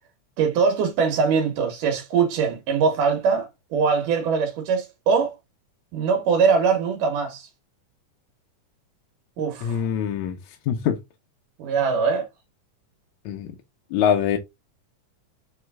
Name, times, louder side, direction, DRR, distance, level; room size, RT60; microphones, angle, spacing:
voice 1, 0.4-5.4 5.9-7.5 9.4-9.9 11.6-12.3, right 5 dB, 85° right, 2.7 m, -22 dB
voice 2, 9.6-10.4 10.7-11.0 13.3-13.5 13.9-14.4, left 8 dB, 75° left, 2.0 m, -23 dB
7.8 x 3.4 x 3.5 m
omnidirectional pair, 3.6 m